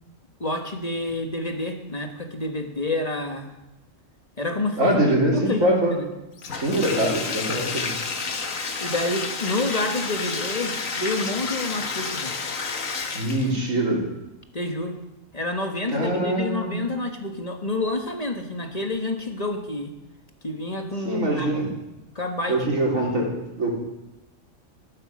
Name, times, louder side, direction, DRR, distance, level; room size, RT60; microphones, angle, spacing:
voice 1, 0.4-3.5 4.4-6.1 8.8-12.3 14.5-15.0 15.3-19.9 20.4-21.5 22.1-22.9, left 2 dB, 30° left, 4 dB, 1.5 m, -28 dB
voice 2, 4.8-5.9 6.5-7.9 13.1-14.0 15.9-16.8 21.1-21.7 22.5-23.7, right 1 dB, 75° right, -2 dB, 4.0 m, -23 dB
Bathtub (filling or washing), 6.4-13.6, left 4 dB, 75° left, 1.7 m, -30 dB
14.5 x 11.5 x 6.3 m, 0.94 s
omnidirectional pair, 1.4 m